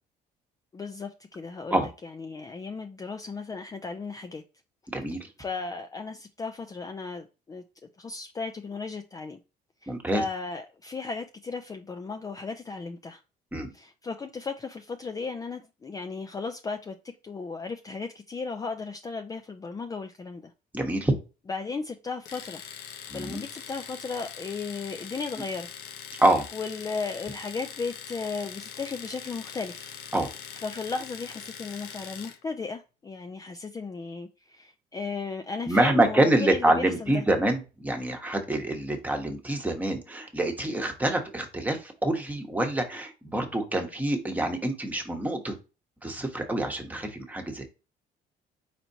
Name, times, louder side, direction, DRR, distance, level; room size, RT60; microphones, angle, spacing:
voice 1, 0.7-4.4 5.4-7.6 8.0-9.4 9.8-13.2 13.7-17.0 17.2-20.5 21.5-22.6 23.1-25.7 26.5-30.0 30.5-37.2, left 4 dB, 20° left, 0.4 m, -35 dB
voice 2, 4.9-5.3 9.9-10.2 13.5-13.7 20.7-21.1 23.1-23.4 26.2-26.5 30.1-30.3 35.7-45.6 46.0-47.6, right 1 dB, 10° right, 1.1 m, -26 dB
Domestic sounds home sounds, 22.3-32.4, left 8 dB, 75° left, 0.7 m, -42 dB
4.4 x 4.2 x 2.7 m
cardioid pair, 110°, 17 cm